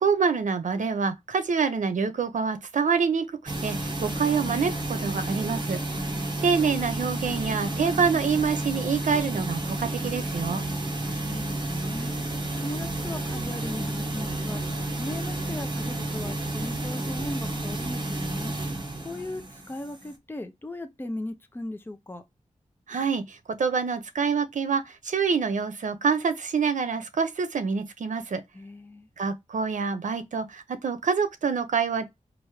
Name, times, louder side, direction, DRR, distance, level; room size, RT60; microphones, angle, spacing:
voice 1, 0.0-3.2 3.6-5.8 6.4-10.6 22.9-28.4 29.2-32.1, right 5 dB, 80° right, 0.7 m, -26 dB
sound 1, 3.5-20.1, right 2 dB, 35° right, 1.2 m, -31 dB
voice 2, 6.0-6.4 10.7-18.5 19.0-22.2 28.5-29.1, left 1 dB, 15° left, 0.7 m, -38 dB
4.6 x 2.6 x 3.1 m
wide cardioid pair, 95°, 13 cm